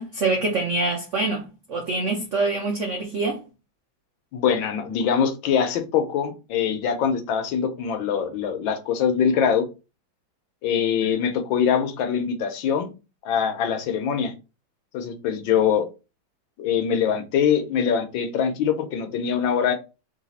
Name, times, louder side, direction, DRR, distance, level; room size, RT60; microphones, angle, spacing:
voice 1, 0.0-1.4 1.7-3.4, right 3 dB, 80° right, 0.6 m, -25 dB
voice 2, 4.3-9.7 10.6-12.9 13.2-14.3 14.9-15.9 16.6-19.7, left 7 dB, 75° left, 1.5 m, -23 dB
4.0 x 2.7 x 4.1 m
omnidirectional pair, 2.2 m